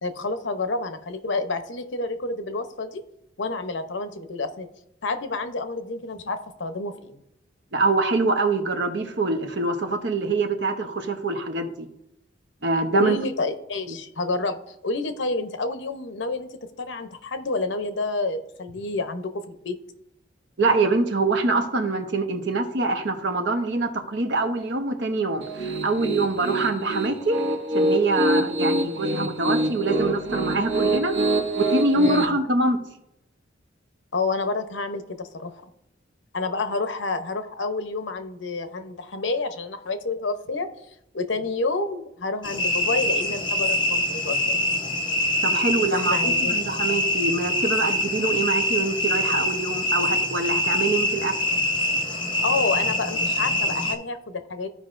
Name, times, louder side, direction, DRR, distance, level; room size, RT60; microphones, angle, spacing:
voice 1, 0.0-3.0 3.4-4.7 5.0-7.2 12.9-14.6 14.8-16.5 16.8-19.8 31.9-32.4 34.1-35.6 36.3-40.7 41.1-44.6 45.9-46.7 52.4-54.7, left 3 dB, 75° left, 8 dB, 0.8 m, -29 dB
voice 2, 7.7-11.9 12.6-13.2 13.9-14.0 20.6-27.4 27.7-31.1 31.5-32.8 45.4-51.3, right 3 dB, 65° right, 5 dB, 1.0 m, -24 dB
Piano, 25.4-32.3, right 1 dB, 80° right, 1.6 m, -25 dB
sound 1, 42.4-53.9, left 1 dB, 25° left, 0.9 m, -24 dB
14.5 x 5.1 x 2.6 m, 0.82 s
head